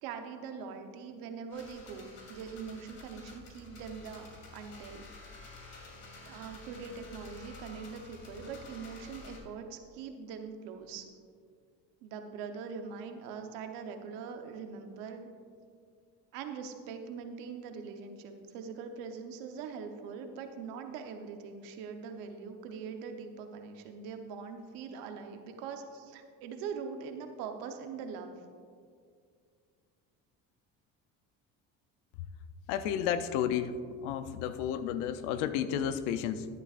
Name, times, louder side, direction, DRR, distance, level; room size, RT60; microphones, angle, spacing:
voice 1, 0.0-4.3 4.5-5.1 6.2-11.0 12.0-15.3 16.3-28.3, right 6 dB, 80° right, 6 dB, 1.0 m, -42 dB
sound 1, 1.5-9.4, left 3 dB, 55° left, 2.7 m, -50 dB
voice 2, 32.7-33.8 34.0-36.5, left 9 dB, 90° left, 12 dB, 0.6 m, -32 dB
12.5 x 10.5 x 2.5 m, 2.1 s
supercardioid pair, 85°, 35 cm